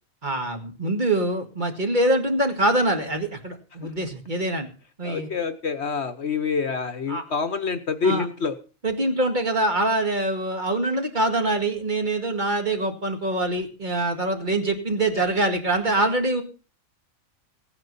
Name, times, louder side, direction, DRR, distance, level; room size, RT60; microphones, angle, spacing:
voice 1, 0.2-4.7 5.0-5.3 7.1-7.2 8.0-8.3 8.8-16.4, right 1 dB, 35° right, 4 dB, 2.1 m, -24 dB
voice 2, 5.0-8.5, left 5 dB, 55° left, 11 dB, 1.2 m, -26 dB
16.5 x 9.6 x 5.4 m, 0.37 s
omnidirectional pair, 1.4 m